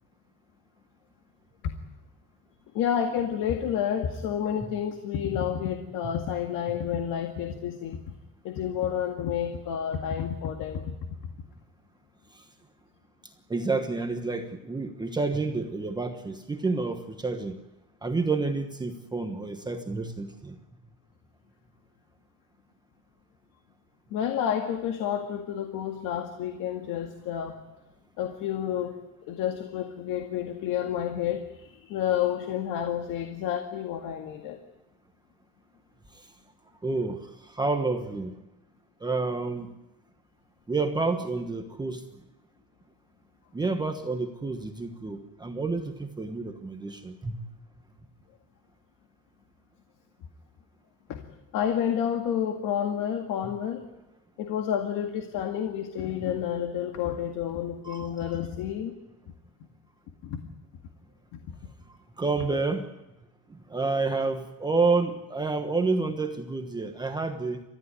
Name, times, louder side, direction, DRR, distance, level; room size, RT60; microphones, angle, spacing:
voice 1, 2.7-8.0 8.4-10.9 24.1-27.6 28.2-34.6 51.1-51.3 51.5-53.9 54.4-58.9 60.2-60.4, left 9 dB, 60° left, 5 dB, 2.0 m, -30 dB
voice 2, 13.5-17.6 18.0-20.6 36.8-38.3 39.0-39.7 40.7-42.0 43.5-47.4 57.8-58.1 62.2-62.9 63.5-67.6, right 3 dB, 10° right, 5 dB, 1.2 m, -29 dB
29.5 x 14.5 x 9.8 m, 0.98 s
cardioid pair, 170°, 37 cm